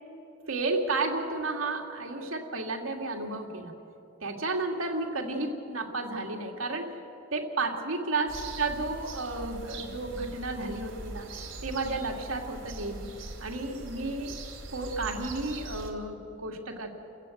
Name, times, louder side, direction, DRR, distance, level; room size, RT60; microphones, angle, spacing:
voice 1, 0.5-3.7 4.2-6.9 7.3-11.3 11.6-13.1 13.4-14.4 14.7-16.9, right 3 dB, 80° right, 2 dB, 2.6 m, -32 dB
sound 1, 8.3-15.9, right 2 dB, 65° right, 3.4 m, -41 dB
29.0 x 17.0 x 8.0 m, 3.0 s
head